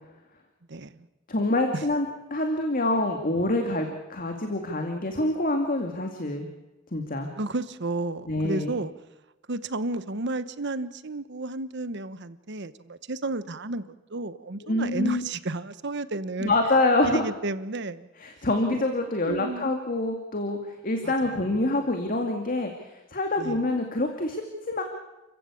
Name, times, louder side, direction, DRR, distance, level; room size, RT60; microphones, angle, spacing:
voice 1, 0.7-1.1 1.7-1.8 7.4-8.9 9.5-13.8 14.1-16.5 17.0-18.1 18.7-18.9 19.3-19.7 21.0-21.1 23.4-23.6, right 2 dB, 60° right, 14 dB, 1.1 m, -32 dB
voice 2, 1.3-2.1 2.3-6.5 6.9-7.3 8.3-8.7 14.6-15.2 16.4-17.3 18.2-24.8, left 2 dB, 45° left, 4 dB, 2.3 m, -26 dB
29.5 x 15.5 x 8.5 m, 1.0 s
head